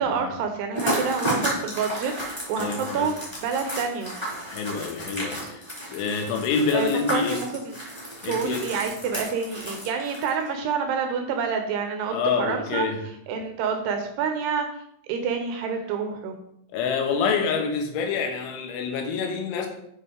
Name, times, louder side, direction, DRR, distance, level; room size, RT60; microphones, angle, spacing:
voice 1, 0.0-4.1 6.7-7.8 8.2-12.9 13.3-14.7 15.1-16.4, right 6 dB, 75° right, 5 dB, 2.6 m, -28 dB
sound 1, 0.7-10.5, equal, 5° left, 2.3 m, -32 dB
voice 2, 2.6-3.1 4.5-7.4 8.2-8.7 12.1-13.0 16.7-19.7, left 5 dB, 90° left, 4 dB, 3.6 m, -27 dB
8.2 x 5.4 x 4.4 m, 0.74 s
omnidirectional pair, 5.3 m